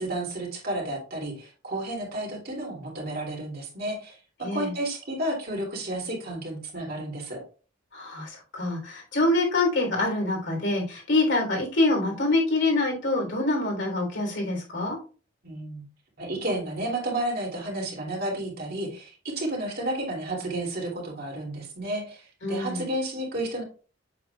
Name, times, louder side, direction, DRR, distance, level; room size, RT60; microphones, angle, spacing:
voice 1, 0.0-7.4 15.4-15.8 16.2-23.6, right 1 dB, 55° right, -1 dB, 2.8 m, -32 dB
voice 2, 4.4-4.7 7.9-15.0 22.4-22.8, left 2 dB, 65° left, 0 dB, 3.4 m, -25 dB
7.6 x 7.5 x 2.3 m, 0.37 s
head